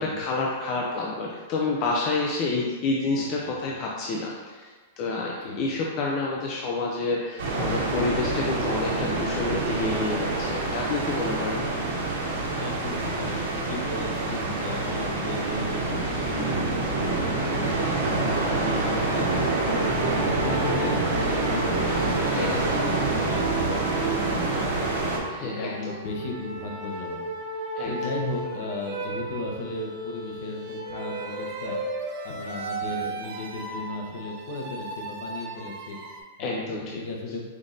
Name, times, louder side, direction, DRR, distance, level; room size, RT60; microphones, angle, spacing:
voice 1, 0.0-4.7 5.0-11.6 22.3-22.6 25.3-26.0 27.8-27.9 36.4-37.0, left 3 dB, 35° left, -2 dB, 0.5 m, -29 dB
voice 2, 3.2-3.6 5.4-5.6 12.5-20.0 20.4-31.8 32.2-37.4, left 2 dB, 60° left, 0 dB, 0.9 m, -36 dB
sound 1, 7.4-25.2, right 2 dB, 75° right, 1.3 m, -26 dB
sound 2, 16.9-36.2, right 2 dB, 45° right, 0.7 m, -36 dB
5.2 x 2.6 x 3.9 m, 1.4 s
supercardioid pair, 155°, 0 cm